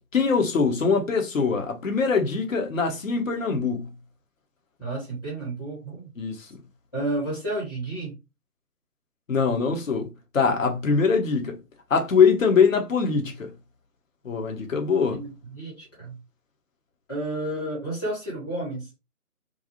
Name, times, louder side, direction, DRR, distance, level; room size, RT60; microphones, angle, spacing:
voice 1, 0.1-3.9 6.2-6.6 9.3-10.1 10.3-11.6 11.9-13.5 14.2-15.2, left 5 dB, 55° left, 0.8 m, -22 dB
voice 2, 4.8-6.1 6.9-8.2 15.1-16.1 17.1-18.9, right 1 dB, 15° left, 1.0 m, -31 dB
2.6 x 2.3 x 2.7 m
figure-of-eight pair, 155°, 46 cm